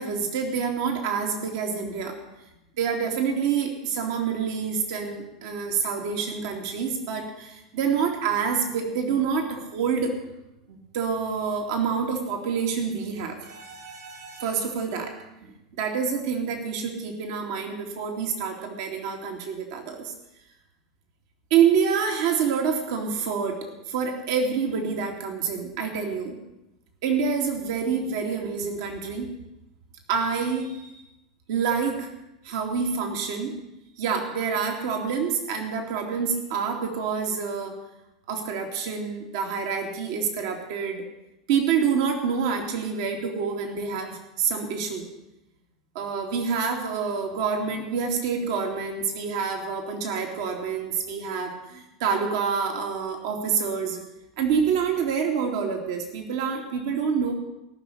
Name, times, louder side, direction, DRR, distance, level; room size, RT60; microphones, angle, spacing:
voice 1, 0.0-2.2 2.8-10.1 10.7-15.1 15.8-20.1 21.5-26.4 27.0-29.3 30.1-30.9 31.5-32.1 32.4-33.5 34.0-37.8 38.3-41.0 41.5-45.0 45.9-54.0 54.4-57.3, right 6 dB, 60° right, 3 dB, 2.6 m, -27 dB
19.0 x 6.4 x 8.6 m, 0.91 s
hypercardioid pair, 90°, 3 cm